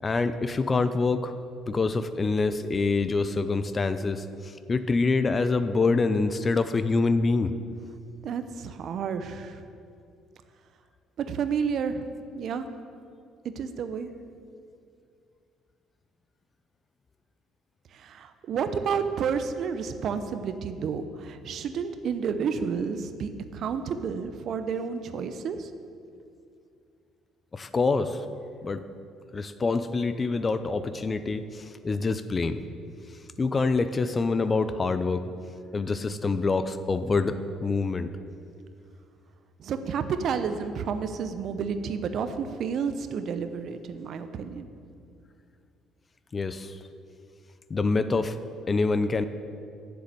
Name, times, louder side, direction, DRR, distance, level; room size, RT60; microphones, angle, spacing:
voice 1, 0.0-1.3 1.7-7.5 27.5-28.2 28.6-28.8 29.3-32.6 33.4-35.3 35.7-38.1 46.3-46.8 47.7-48.4 48.7-49.3, left 3 dB, 35° left, 12 dB, 0.6 m, -26 dB
voice 2, 8.2-9.6 11.2-12.0 12.3-12.7 13.6-14.1 17.9-25.7 39.6-44.7, right 6 dB, 60° right, 10 dB, 0.7 m, -30 dB
7.5 x 6.9 x 8.3 m, 2.4 s
supercardioid pair, 65°, 0 cm